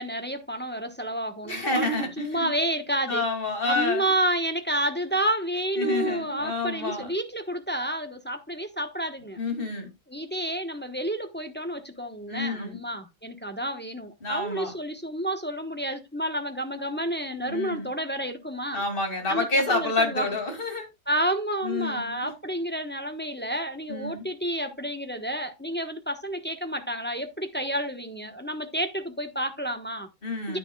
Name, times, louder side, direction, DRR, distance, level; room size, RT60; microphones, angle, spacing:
voice 1, 0.0-3.2 3.7-9.4 10.1-18.8 19.3-20.3 21.1-30.1 30.5-30.6, right 1 dB, 10° left, 1.0 m, -30 dB
voice 2, 1.4-2.5 3.1-4.0 5.8-7.1 9.4-9.9 12.3-12.8 14.2-14.7 17.3-17.9 18.7-20.9 21.6-22.3 23.9-24.2 30.2-30.6, left 2 dB, 40° left, 2.8 m, -28 dB
9.8 x 9.8 x 2.3 m
omnidirectional pair, 1.4 m